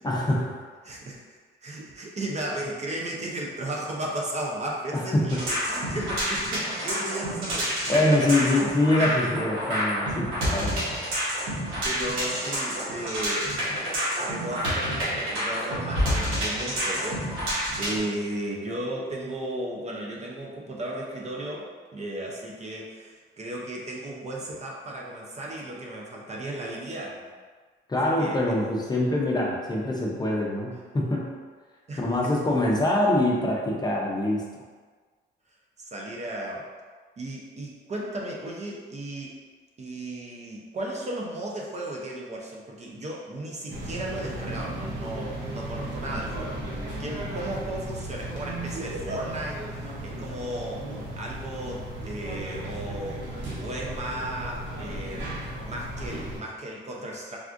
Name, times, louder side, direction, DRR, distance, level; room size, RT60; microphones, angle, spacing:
voice 1, 0.0-0.6 4.9-5.4 7.9-10.8 27.9-31.3 32.0-34.4, left 1 dB, 20° left, -3 dB, 0.6 m, -24 dB
voice 2, 0.8-1.2 1.6-8.0 9.0-9.2 11.8-13.5 14.2-27.3 28.2-28.4 31.9-32.4 35.8-36.7 37.2-39.3 39.8-46.6 47.0-50.9 51.2-53.2 53.6-57.4, right 1 dB, 35° right, -2 dB, 0.5 m, -35 dB
sound 1, 5.3-18.0, equal, 90° right, 1.1 m, -28 dB
sound 2, 43.7-56.4, right 1 dB, 65° right, 0.8 m, -35 dB
3.4 x 2.4 x 2.4 m, 1.5 s
cardioid pair, 90°, 20 cm